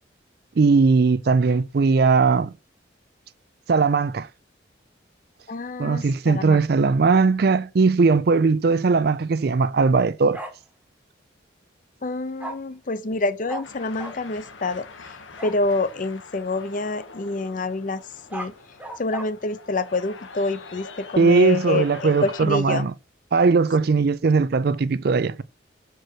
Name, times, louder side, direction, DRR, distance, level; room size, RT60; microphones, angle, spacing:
voice 1, 0.6-2.5 3.7-4.3 5.8-10.4 21.2-22.9 23.3-25.4, right 4 dB, 55° right, 0.4 m, -19 dB
voice 2, 5.5-6.6 12.0-14.9 15.4-18.0 18.3-18.5 19.0-22.9, left 3 dB, 45° left, 0.6 m, -27 dB
Bark, 10.3-10.5 12.4-12.5 13.5-13.6 14.0-14.1 15.4-15.6 18.1-19.2, right 1 dB, 10° right, 1.0 m, -34 dB
sound 1, 13.6-22.5, left 4 dB, 90° left, 1.1 m, -43 dB
6.2 x 4.6 x 4.7 m
head